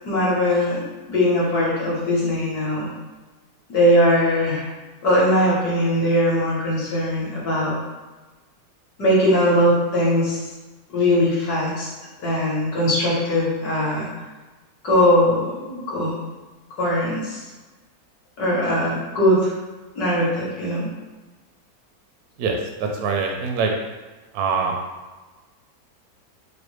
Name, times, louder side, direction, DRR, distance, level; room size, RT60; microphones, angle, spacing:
voice 1, 0.0-2.9 3.7-4.7 5.0-7.8 9.0-10.4 10.9-11.9 12.2-14.1 14.8-16.2 16.8-17.5 18.4-19.5 19.9-20.9, left 1 dB, 60° left, -6 dB, 1.4 m, -20 dB
voice 2, 22.4-23.7 24.3-24.7, right 5 dB, 70° right, 1 dB, 0.9 m, -24 dB
4.8 x 2.1 x 3.1 m, 1.2 s
omnidirectional pair, 2.0 m